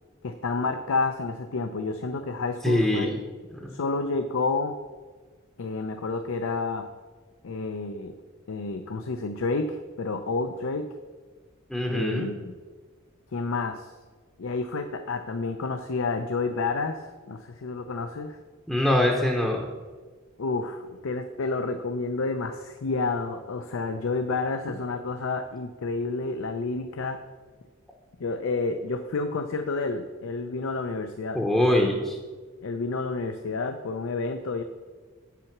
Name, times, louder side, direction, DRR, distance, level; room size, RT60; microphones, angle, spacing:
voice 1, 0.2-3.1 3.7-4.8 5.6-6.9 7.4-8.1 8.5-10.9 11.9-12.5 13.3-13.9 14.4-18.4 20.4-27.2 28.2-31.4 32.6-34.6, left 3 dB, 75° left, 7 dB, 0.5 m, -30 dB
voice 2, 2.6-3.2 11.7-12.3 18.7-19.7 31.3-32.2, left 1 dB, 5° left, 0 dB, 0.7 m, -23 dB
8.1 x 5.9 x 5.9 m, 1.4 s
head